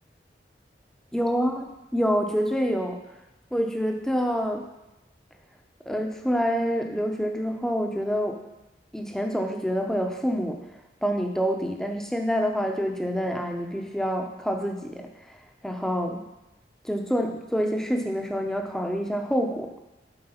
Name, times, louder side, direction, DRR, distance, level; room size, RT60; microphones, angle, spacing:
voice 1, 1.1-3.0 3.5-4.7 5.9-8.4 8.9-10.7 11.0-15.4 15.6-16.3 16.8-19.7, equal, 5° left, 3 dB, 0.7 m, -27 dB
7.9 x 4.5 x 5.7 m, 0.97 s
head